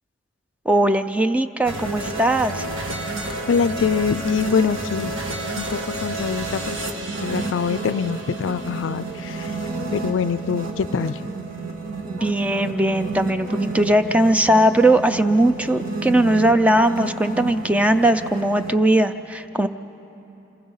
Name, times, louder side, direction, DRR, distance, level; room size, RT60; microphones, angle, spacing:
voice 1, 0.7-2.7 12.0-19.7, right 1 dB, 5° right, 9 dB, 0.4 m, -19 dB
sound 1, 1.6-18.7, right 2 dB, 75° right, 1.6 m, -30 dB
voice 2, 3.4-5.1 5.6-6.8 7.2-9.6 9.9-11.2, left 6 dB, 70° left, 16 dB, 0.4 m, -24 dB
Bark, 7.7-9.3 9.7-11.5 12.1-13.1 13.4-14.4 15.2-16.8, right 3 dB, 60° right, 0.8 m, -43 dB
27.5 x 19.5 x 5.6 m, 2.9 s
head